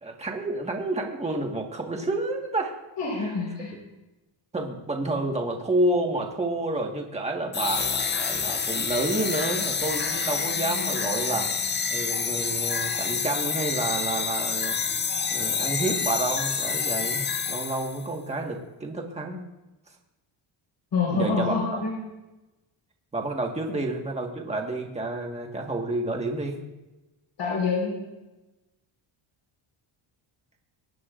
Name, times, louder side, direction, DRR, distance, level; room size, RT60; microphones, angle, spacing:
voice 1, 0.0-2.7 3.2-3.3 4.5-11.5 11.9-14.8 15.3-19.4 21.1-21.6 23.1-26.6, right 2 dB, 15° right, 1 dB, 1.5 m, -29 dB
voice 2, 3.0-3.7 20.9-21.9 27.4-27.9, left 4 dB, 55° left, -5 dB, 4.4 m, -26 dB
sound 1, 7.5-18.1, left 6 dB, 25° left, 0.4 m, -28 dB
23.5 x 9.8 x 2.5 m, 1.0 s
cardioid pair, 160°, 50 cm